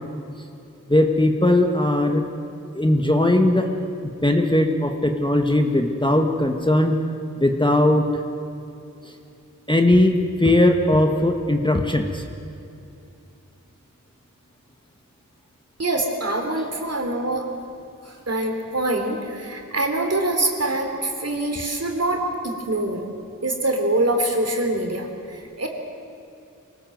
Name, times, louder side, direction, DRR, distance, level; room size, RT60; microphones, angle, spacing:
voice 1, 0.9-2.2 2.7-3.7 4.0-7.0 7.4-8.0 9.7-12.2, left 1 dB, 15° left, 4 dB, 1.4 m, -19 dB
voice 2, 15.8-17.5 18.1-23.0 23.4-25.7, right 1 dB, 45° right, 3 dB, 3.4 m, -24 dB
24.5 x 18.5 x 7.9 m, 2.7 s
wide cardioid pair, 75°, 33 cm